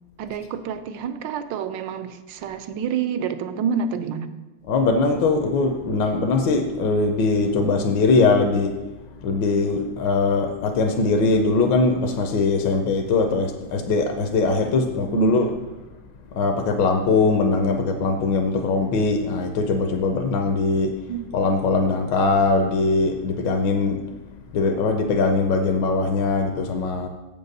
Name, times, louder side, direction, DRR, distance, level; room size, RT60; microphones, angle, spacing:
voice 1, 0.2-4.3 15.1-15.3 21.1-21.3, right 6 dB, 75° right, 10 dB, 1.2 m, -28 dB
voice 2, 4.7-8.7 9.2-15.5 16.4-20.9 21.3-24.0 24.5-27.1, left 3 dB, 70° left, 5 dB, 1.3 m, -21 dB
7.8 x 5.3 x 6.5 m, 1.1 s
omnidirectional pair, 2.2 m